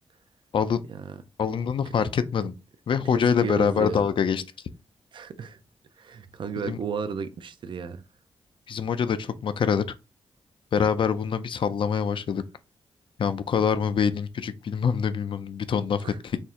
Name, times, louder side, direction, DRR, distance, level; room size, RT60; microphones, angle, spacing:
voice 1, 1.4-2.5 2.9-4.4 6.6-6.8 8.7-9.8 10.7-12.4 13.2-16.4, left 7 dB, 55° left, 0.4 m, -25 dB
voice 2, 3.1-4.0 5.1-5.6 6.0-8.0 16.0-16.2, right 6 dB, 55° right, 0.4 m, -34 dB
4.3 x 2.0 x 3.6 m
cardioid pair, 85°, 10 cm